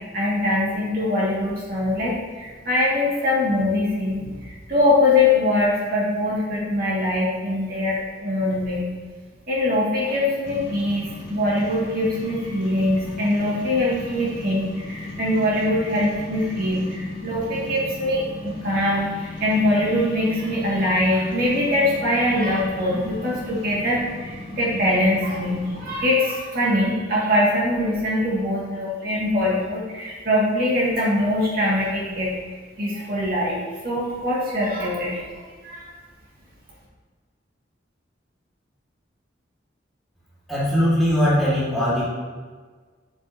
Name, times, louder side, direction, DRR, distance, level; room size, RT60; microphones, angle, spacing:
voice 1, 0.1-8.9 9.5-33.6 33.8-35.9, left 1 dB, 50° right, -6 dB, 2.1 m, -23 dB
sound 1, 10.4-26.0, left 2 dB, 85° left, 2.4 m, -37 dB
voice 2, 40.5-42.1, equal, ahead, -10 dB, 1.9 m, -20 dB
8.3 x 7.6 x 2.8 m, 1.5 s
head